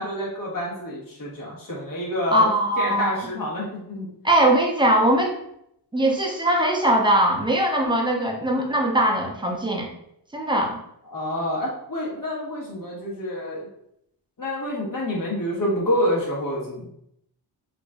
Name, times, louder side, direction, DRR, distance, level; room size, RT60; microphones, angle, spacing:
voice 1, 0.0-2.5 2.8-4.1 11.0-13.7 14.4-16.9, left 1 dB, 50° left, -4 dB, 1.2 m, -28 dB
voice 2, 2.3-3.1 4.2-5.4 5.9-9.9 10.3-10.8, right 1 dB, 10° right, 0 dB, 0.4 m, -21 dB
4.7 x 2.5 x 2.2 m, 0.74 s
wide cardioid pair, 170°, 43 cm